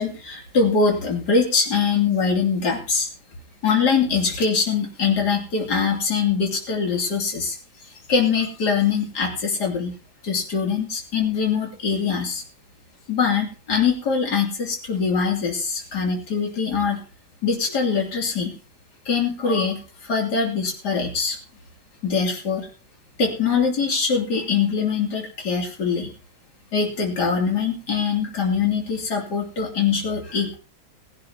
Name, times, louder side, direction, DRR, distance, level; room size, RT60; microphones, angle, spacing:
voice 1, 0.0-3.1 3.6-10.0 10.2-12.4 13.1-17.0 17.4-18.6 19.1-21.4 22.0-22.7 23.2-26.1 26.7-30.5, left 5 dB, 60° left, -1 dB, 3.6 m, -23 dB
20.5 x 11.5 x 2.9 m, 0.34 s
omnidirectional pair, 2.0 m